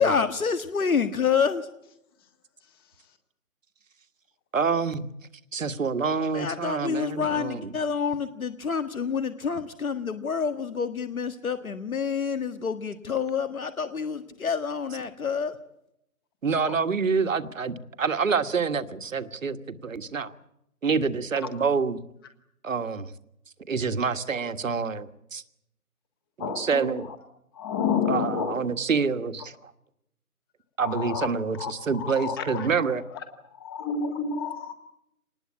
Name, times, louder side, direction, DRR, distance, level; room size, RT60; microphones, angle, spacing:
voice 1, 0.0-1.7 6.3-15.6, left 6 dB, 65° left, 10 dB, 1.7 m, -28 dB
voice 2, 4.5-5.1 5.5-7.7 16.4-20.3 20.8-22.0 22.6-23.1 23.7-25.4 26.4-27.1 28.1-29.7 30.8-33.0, right 5 dB, 60° right, 10 dB, 1.7 m, -27 dB
voice 3, 26.4-26.9 27.6-28.6 30.8-31.3 31.6-32.7 33.6-34.7, left 6 dB, 15° left, 8 dB, 1.6 m, -29 dB
26.0 x 20.0 x 8.5 m, 0.81 s
figure-of-eight pair, 160°, 45 cm